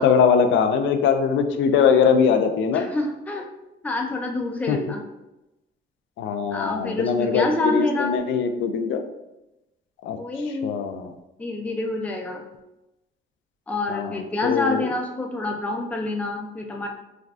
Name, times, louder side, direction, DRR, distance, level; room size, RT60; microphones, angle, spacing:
voice 1, 0.0-2.9 4.7-4.8 6.2-9.0 10.0-10.2 10.6-11.1 13.9-14.8, left 6 dB, 75° left, 7 dB, 0.4 m, -21 dB
voice 2, 2.7-3.5 3.8-5.0 6.5-8.2 10.2-10.8 11.4-12.4 13.7-16.9, left 2 dB, 5° left, 1 dB, 0.4 m, -27 dB
3.3 x 2.3 x 2.4 m, 0.95 s
cardioid pair, 90°, 20 cm